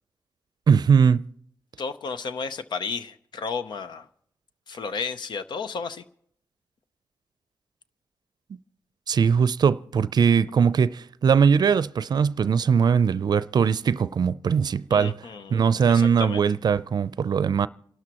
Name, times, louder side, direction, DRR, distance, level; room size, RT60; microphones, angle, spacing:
voice 1, 0.7-1.3 9.1-15.2 15.5-17.7, right 6 dB, 60° right, 0.5 m, -20 dB
voice 2, 1.8-4.1 4.7-6.0 14.9-16.4, left 5 dB, 75° left, 0.7 m, -33 dB
28.0 x 12.5 x 3.0 m
supercardioid pair, 40°, 8 cm